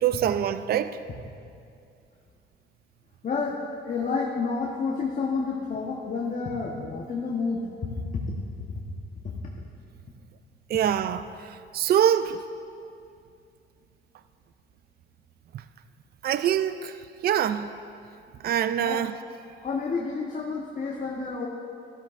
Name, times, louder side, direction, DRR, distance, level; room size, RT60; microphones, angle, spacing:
voice 1, 0.0-1.0 10.7-12.4 16.2-17.0 17.2-17.7 18.4-19.1, right 10 dB, 50° right, 0.4 m, -24 dB
voice 2, 3.2-3.6 3.8-8.3 8.7-8.8 9.2-9.3 18.8-19.2 19.6-21.5, left 4 dB, 40° left, 1.2 m, -30 dB
13.0 x 12.5 x 2.5 m
cardioid pair, 90°, 20 cm